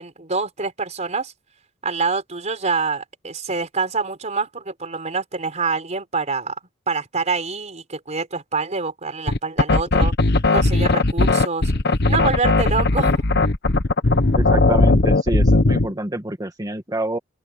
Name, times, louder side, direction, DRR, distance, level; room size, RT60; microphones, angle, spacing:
voice 1, 0.0-1.3 1.8-6.6 6.9-10.1 10.5-11.7 12.1-13.2, right 4 dB, 35° right, 4.1 m, -26 dB
sound 1, 9.3-15.9, left 2 dB, 55° left, 1.3 m, -17 dB
voice 2, 14.3-17.2, right 1 dB, 20° right, 1.8 m, -27 dB
open air
head